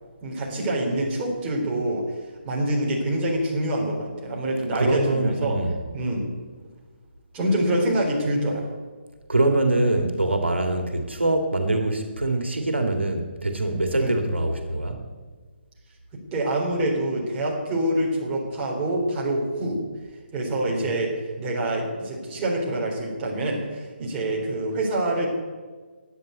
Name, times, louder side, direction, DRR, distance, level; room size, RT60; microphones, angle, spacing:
voice 1, 0.2-2.2 2.4-5.6 5.9-6.3 7.3-8.6 13.9-14.1 16.1-19.8 20.3-25.3, right 1 dB, 20° right, -3 dB, 3.8 m, -26 dB
voice 2, 4.7-5.8 9.3-15.0, right 2 dB, 85° right, 5 dB, 2.1 m, -24 dB
11.5 x 9.5 x 9.3 m, 1.4 s
figure-of-eight pair, 150°, 6 cm